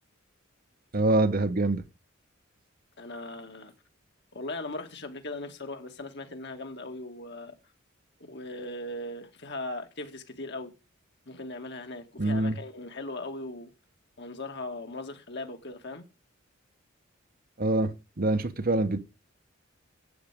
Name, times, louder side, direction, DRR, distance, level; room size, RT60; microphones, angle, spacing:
voice 1, 0.9-1.8 12.2-12.6 17.6-17.9 18.2-19.0, right 2 dB, 45° right, 1.0 m, -25 dB
voice 2, 3.0-3.7 4.3-7.6 8.2-10.7 11.3-13.7 14.2-16.0, left 2 dB, 60° left, 2.2 m, -39 dB
13.0 x 8.7 x 5.1 m
head